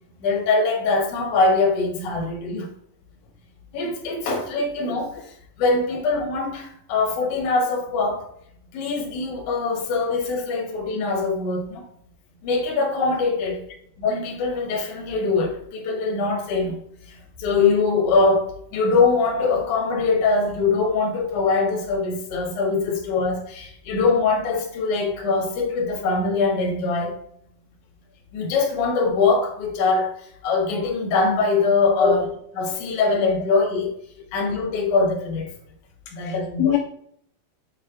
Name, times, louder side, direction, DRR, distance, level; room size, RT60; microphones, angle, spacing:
voice 1, 0.2-2.7 3.7-5.3 5.6-8.3 8.7-11.8 12.4-13.6 14.0-16.8 17.0-27.2 28.3-30.1 30.4-32.2 32.6-33.9 34.3-35.5 36.1-36.7, left 4 dB, 65° left, 2.6 m, -22 dB
voice 2, 36.2-36.8, left 8 dB, 85° left, 2.3 m, -22 dB
7.5 x 4.3 x 3.6 m
omnidirectional pair, 4.1 m